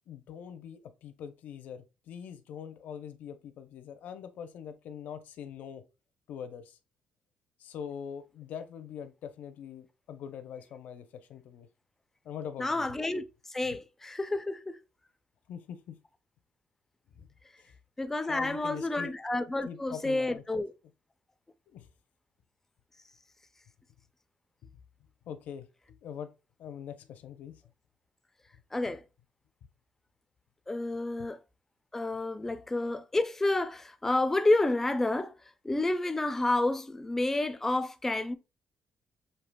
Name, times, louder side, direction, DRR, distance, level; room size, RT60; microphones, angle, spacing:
voice 1, 0.1-5.8 6.3-6.8 7.6-11.7 12.2-12.9 13.6-13.8 15.5-16.0 17.1-17.3 17.6-17.7 18.3-19.2 19.6-20.6 21.7-21.9 24.6-24.7 25.3-26.3 26.6-27.6 28.9-29.0 31.2-31.3, left 8 dB, 75° left, 0.6 m, -43 dB
voice 2, 12.6-13.2 13.5-14.8 18.0-20.7 28.7-29.0 30.7-31.4 31.9-35.3 35.6-38.3, left 2 dB, 10° left, 0.4 m, -29 dB
6.6 x 2.8 x 2.2 m
cardioid pair, 115°, 3 cm